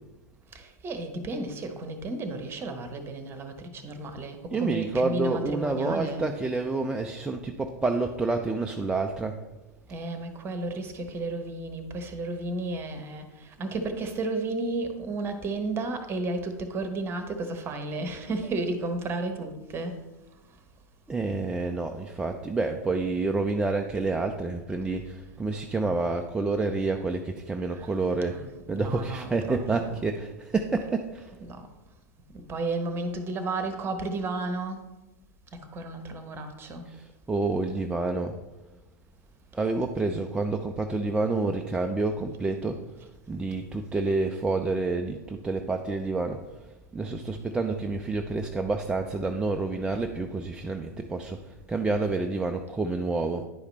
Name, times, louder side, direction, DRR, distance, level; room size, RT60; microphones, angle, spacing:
voice 1, 0.5-6.3 9.9-20.0 27.7-27.9 28.3-30.0 31.4-31.7 32.3-34.8 35.5-36.9, right 2 dB, 25° right, 7 dB, 1.0 m, -33 dB
voice 2, 4.5-9.4 21.1-28.4 28.7-31.3 36.9-38.4 39.5-42.9 43.3-46.5 46.9-53.5, right 3 dB, 10° right, 3 dB, 0.4 m, -28 dB
10.0 x 4.8 x 3.3 m, 1.1 s
figure-of-eight pair, 95°, 9 cm